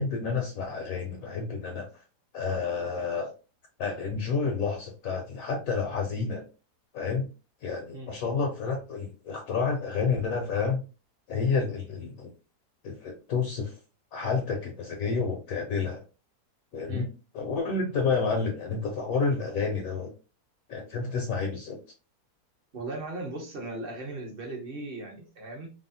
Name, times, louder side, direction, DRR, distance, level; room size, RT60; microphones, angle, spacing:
voice 1, 0.0-2.0 2.3-3.3 3.8-6.5 6.9-7.3 7.6-10.8 11.3-12.3 12.8-13.8 14.1-16.0 16.7-17.0 17.3-20.1 20.7-21.8, left 5 dB, 70° left, 3 dB, 0.9 m, -30 dB
voice 2, 22.7-25.7, right 2 dB, 45° right, 1 dB, 0.8 m, -37 dB
3.4 x 2.0 x 2.6 m, 0.32 s
omnidirectional pair, 1.8 m